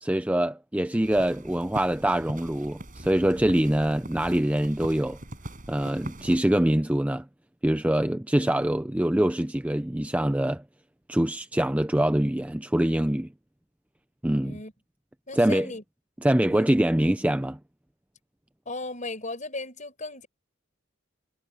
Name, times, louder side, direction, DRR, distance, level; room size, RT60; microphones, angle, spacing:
voice 1, 0.0-5.2 5.7-7.3 7.6-10.6 11.1-13.3 14.2-14.6 15.3-15.7 16.2-17.6, right 1 dB, 5° right, 0.5 m, -24 dB
sound 1, 1.0-6.4, right 1 dB, 40° right, 7.9 m, -42 dB
voice 2, 14.4-14.7 15.3-15.8 16.4-16.7 18.7-20.3, left 2 dB, 35° left, 5.4 m, -36 dB
head